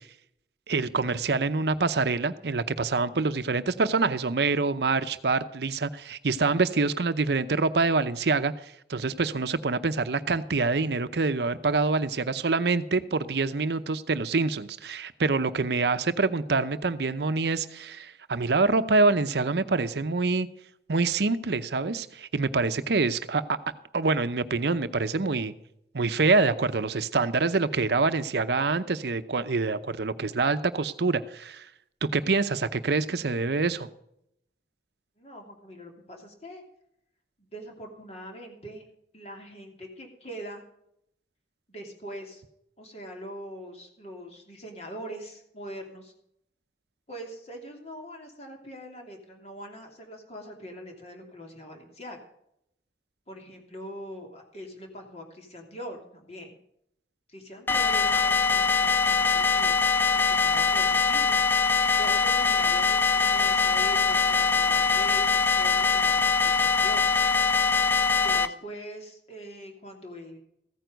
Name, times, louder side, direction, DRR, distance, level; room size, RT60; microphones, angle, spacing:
voice 1, 0.7-8.5 8.9-20.5 20.9-23.6 23.9-25.5 25.9-31.7 32.0-33.9, right 3 dB, 70° right, 12 dB, 0.7 m, -26 dB
voice 2, 35.2-36.6 37.4-38.9 39.1-40.6 41.7-42.4 42.8-46.1 47.1-52.2 53.3-56.5 57.3-59.8 60.1-61.5 62.0-67.0 68.2-70.4, equal, 35° left, 2 dB, 2.8 m, -42 dB
sound 1, 57.7-68.5, left 5 dB, 10° left, 0.5 m, -23 dB
15.0 x 9.2 x 5.1 m, 0.76 s
head